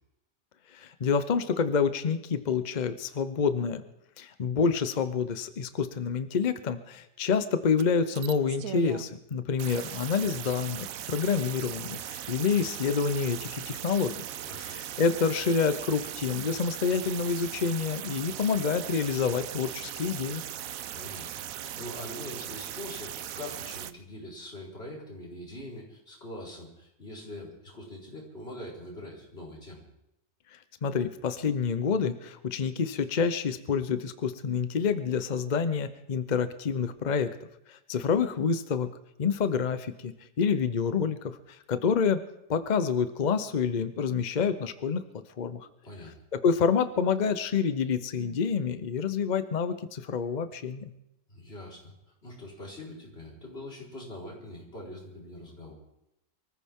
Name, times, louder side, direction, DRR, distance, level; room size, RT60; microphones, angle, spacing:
voice 1, 0.7-3.8 4.2-14.2 14.6-20.4 30.5-37.4 37.7-38.9 39.2-42.2 42.5-45.0 45.4-45.7 46.3-50.9, left 6 dB, 60° left, 11 dB, 0.4 m, -28 dB
sound 1, 7.8-7.9 8.2-9.1 9.6-23.9, right 10 dB, 65° right, 1.0 m, -39 dB
voice 2, 14.4-14.7 20.9-29.8 45.8-46.1 51.3-51.9 52.2-55.7, left 1 dB, 35° left, -4 dB, 4.8 m, -43 dB
24.0 x 14.5 x 3.7 m, 0.84 s
omnidirectional pair, 1.8 m